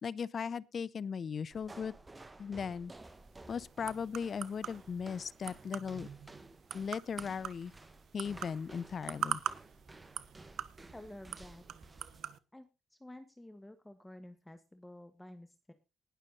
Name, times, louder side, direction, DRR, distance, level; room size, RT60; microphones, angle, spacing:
voice 1, 0.0-1.9 2.4-2.9 3.5-6.1 6.7-7.7 8.1-9.4, left 6 dB, 50° left, 0.7 m, -38 dB
sound 1, 1.5-12.3, right 2 dB, 20° right, 1.4 m, -54 dB
sound 2, 3.0-12.4, right 10 dB, 70° right, 1.0 m, -44 dB
voice 2, 10.9-11.6 12.5-15.7, left 1 dB, 10° left, 1.5 m, -51 dB
19.5 x 6.6 x 3.9 m
cardioid pair, 90°, 0 cm